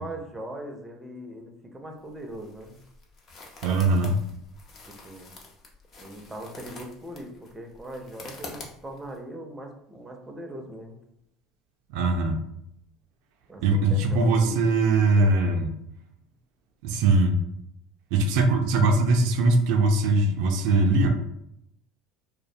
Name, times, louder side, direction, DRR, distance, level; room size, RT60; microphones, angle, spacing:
voice 1, 0.0-2.8 4.9-5.4 6.0-11.0 13.5-14.7 15.2-15.7, right 1 dB, 10° right, 2 dB, 0.4 m, -40 dB
sound 1, 2.0-9.2, left 2 dB, 45° left, 0.6 m, -46 dB
voice 2, 3.6-4.1 11.9-12.4 13.6-15.7 16.8-17.4 18.1-21.1, right 2 dB, 75° right, 4 dB, 0.3 m, -21 dB
2.3 x 2.0 x 2.6 m, 0.77 s
supercardioid pair, 95°, 0 cm